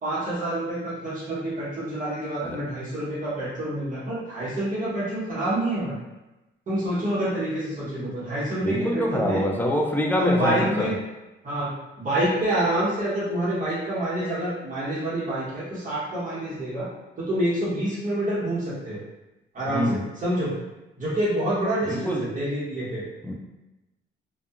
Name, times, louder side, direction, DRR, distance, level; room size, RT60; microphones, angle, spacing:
voice 1, 0.0-6.0 6.7-9.4 10.2-10.9 11.4-16.9 17.2-19.0 19.5-20.5 21.0-23.0, right 1 dB, 40° right, -9 dB, 1.1 m, -27 dB
voice 2, 8.6-10.9 19.7-20.0 21.8-22.3 23.2-23.3, left 1 dB, 10° left, 0 dB, 0.4 m, -25 dB
2.7 x 2.3 x 2.4 m, 1.0 s
cardioid pair, 90°, 20 cm